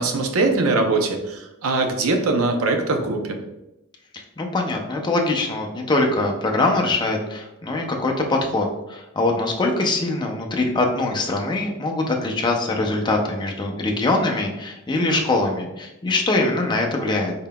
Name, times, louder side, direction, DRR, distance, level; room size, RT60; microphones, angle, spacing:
voice 1, 0.0-3.4, right 3 dB, 70° right, 4 dB, 0.5 m, -22 dB
voice 2, 4.4-17.3, left 2 dB, 20° left, 1 dB, 0.5 m, -23 dB
3.8 x 3.7 x 2.2 m, 0.92 s
head